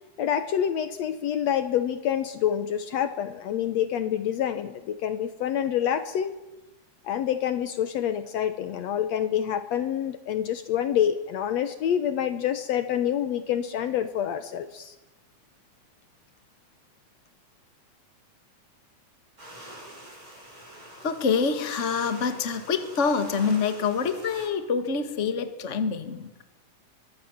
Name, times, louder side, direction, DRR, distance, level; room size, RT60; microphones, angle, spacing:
voice 1, 0.2-6.3 7.0-15.0, left 9 dB, 70° left, 11 dB, 2.1 m, -27 dB
sound 1, 19.4-24.5, right 1 dB, 25° right, 8.4 m, -45 dB
voice 2, 21.0-26.4, left 5 dB, 30° left, 9 dB, 1.7 m, -26 dB
24.5 x 23.0 x 7.3 m, 1.1 s
omnidirectional pair, 3.4 m